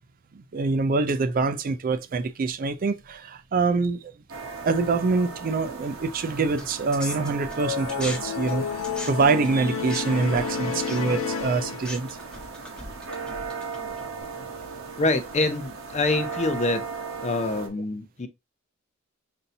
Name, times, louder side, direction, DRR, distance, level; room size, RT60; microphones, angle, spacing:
voice 1, 0.3-4.1 4.6-12.1, right 4 dB, 45° right, 0.4 m, -25 dB
sound 1, 4.3-17.7, right 5 dB, 80° right, 1.0 m, -37 dB
sound 2, 6.6-8.2 8.5-14.2, left 1 dB, 5° left, 1.1 m, -40 dB
sound 3, 7.6-12.3, left 6 dB, 75° left, 0.5 m, -31 dB
voice 2, 15.0-16.9 17.2-18.3, left 2 dB, 35° left, 0.6 m, -25 dB
5.5 x 2.7 x 2.6 m
head